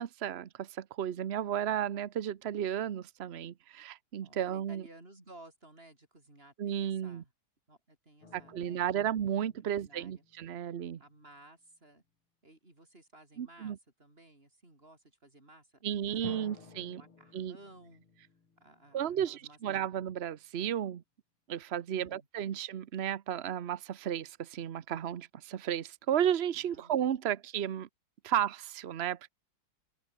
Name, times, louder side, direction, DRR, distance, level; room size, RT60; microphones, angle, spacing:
voice 1, 0.0-4.8 6.6-7.2 8.3-11.0 13.4-13.8 15.8-17.0 17.3-17.6 18.9-21.0 21.5-27.9 28.2-29.3, right 10 dB, 90° right, 0.5 m, -33 dB
voice 2, 4.2-7.3 7.7-8.9 9.6-10.2 11.0-12.0 12.4-16.6 16.9-18.0 18.6-19.6 21.9-22.3 26.6-27.0, right 1 dB, 25° right, 5.8 m, -57 dB
sound 1, 8.2-11.3 16.2-19.9, left 4 dB, 80° left, 4.5 m, -55 dB
omnidirectional pair, 2.3 m